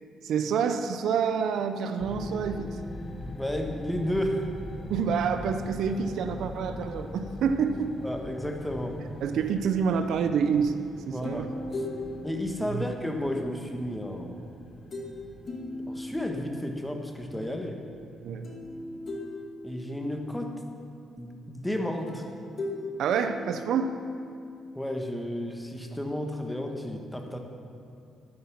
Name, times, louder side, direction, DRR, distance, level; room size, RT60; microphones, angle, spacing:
voice 1, 0.2-2.7 4.9-7.9 9.2-10.7 11.1-11.5 12.6-12.8 18.2-18.5 23.0-24.0, right 6 dB, 75° right, 8 dB, 0.7 m, -27 dB
sound 1, 2.0-19.1, left 1 dB, 25° left, 1.3 m, -42 dB
voice 2, 3.3-4.5 8.0-9.0 11.1-11.5 12.2-14.4 15.9-17.8 19.6-20.6 21.2-22.2 24.7-27.4, left 1 dB, 5° left, 3 dB, 1.4 m, -32 dB
sound 2, 11.2-13.5 14.9-15.2 15.5-16.8 18.4-20.1 22.1-24.3, left 2 dB, 45° left, 2.1 m, -38 dB
12.5 x 9.6 x 5.9 m, 2.4 s
cardioid pair, 90°, 0 cm